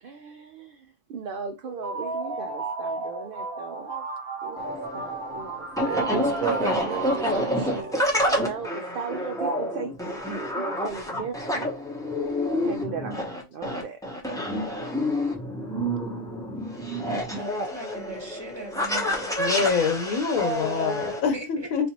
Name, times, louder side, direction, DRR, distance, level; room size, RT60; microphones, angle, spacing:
voice 1, 0.0-4.1 4.4-6.1 8.1-11.7 12.5-14.0, right 5 dB, 70° right, 0.5 m, -37 dB
sound 1, 1.6-8.5, right 2 dB, 50° right, 0.8 m, -34 dB
sound 2, 4.6-21.2, equal, 5° left, 0.4 m, -28 dB
voice 2, 5.8-7.9, right 8 dB, 85° right, 1.1 m, -32 dB
voice 3, 17.3-19.3 21.3-21.7, right 2 dB, 20° right, 1.0 m, -40 dB
voice 4, 19.4-21.9, left 5 dB, 90° left, 1.2 m, -25 dB
4.3 x 2.4 x 2.8 m
omnidirectional pair, 1.4 m